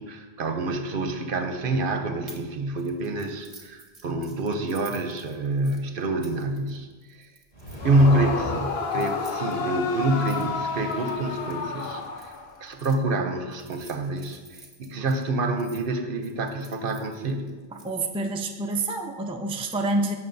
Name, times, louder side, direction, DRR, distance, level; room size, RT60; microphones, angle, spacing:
voice 1, 0.0-7.3 7.8-17.5, right 2 dB, 60° right, 6 dB, 0.8 m, -27 dB
sound 1, 2.3-2.5 2.8-8.1 8.8-13.0 13.5-15.8 16.2-17.9, right 2 dB, 30° right, 1.0 m, -50 dB
sound 2, 7.5-12.4, equal, 40° left, 2.3 m, -41 dB
Yell / Screaming, 7.8-12.7, left 5 dB, 70° left, 0.9 m, -31 dB
voice 2, 17.8-20.2, right 2 dB, 10° right, 3 dB, 0.3 m, -27 dB
14.5 x 6.0 x 2.6 m, 1.3 s
omnidirectional pair, 1.1 m